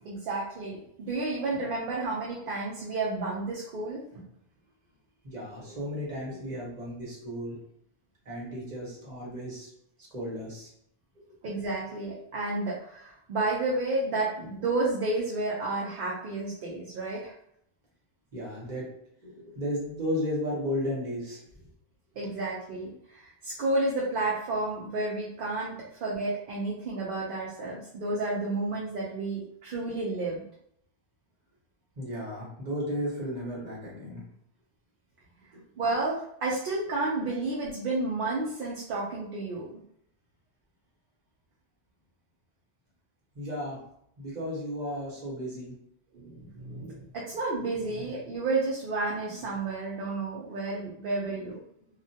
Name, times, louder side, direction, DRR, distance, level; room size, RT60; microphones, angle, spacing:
voice 1, 0.0-4.2 11.4-17.3 22.2-30.4 35.8-39.7 46.1-51.6, right 2 dB, 60° right, -4 dB, 0.7 m, -31 dB
voice 2, 5.2-7.6 8.2-9.7 10.1-10.7 11.2-11.3 18.3-18.9 19.2-21.4 22.2-22.3 32.0-34.2 35.5-35.6 43.3-43.8 44.2-45.8 51.2-51.5, equal, 45° right, -5 dB, 1.1 m, -34 dB
2.4 x 2.1 x 2.6 m, 0.72 s
omnidirectional pair, 1.1 m